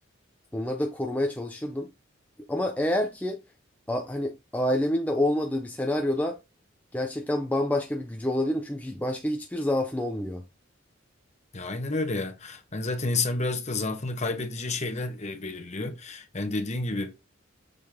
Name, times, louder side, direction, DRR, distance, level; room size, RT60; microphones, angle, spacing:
voice 1, 0.5-1.9 2.5-3.4 3.9-6.4 6.9-10.4, left 1 dB, 10° left, 0.6 m, -28 dB
voice 2, 11.5-17.1, left 2 dB, 35° left, 1.0 m, -30 dB
6.6 x 4.2 x 3.6 m
head